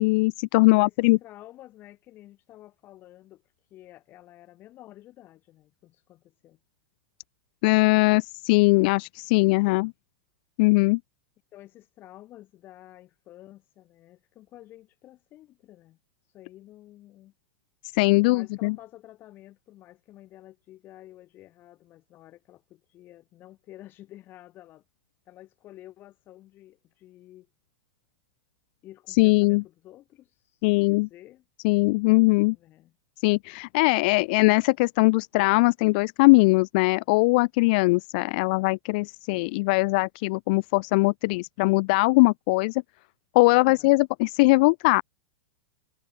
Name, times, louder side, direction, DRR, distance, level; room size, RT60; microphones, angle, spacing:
voice 1, 0.0-1.2 7.6-9.9 10.6-11.0 17.9-18.8 29.2-29.6 30.6-31.1 31.6-32.6 33.2-42.8 43.3-45.0, left 25 dB, 55° left, 0.3 m, -21 dB
voice 2, 0.6-3.4 3.7-6.6 9.7-9.9 10.8-11.0 11.5-16.0 16.3-17.3 18.2-24.8 25.3-27.5 28.8-31.4 32.5-32.9 43.6-43.9, left 14 dB, 35° left, 7.6 m, -50 dB
hypercardioid pair, 125°, 6 cm